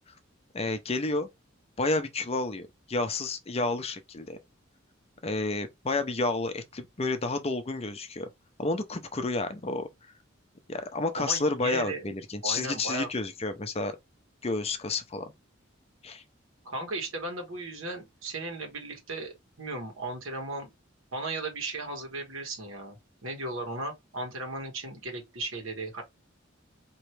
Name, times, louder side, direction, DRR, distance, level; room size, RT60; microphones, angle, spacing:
voice 1, 0.5-1.3 1.8-4.4 5.2-8.3 8.6-9.9 10.7-13.9 14.4-15.3 16.0-16.2, left 3 dB, 30° left, 0.6 m, -30 dB
voice 2, 11.2-12.0 12.4-13.1 16.6-20.7 21.1-26.0, right 2 dB, 80° right, 1.6 m, -36 dB
4.5 x 3.0 x 3.2 m
head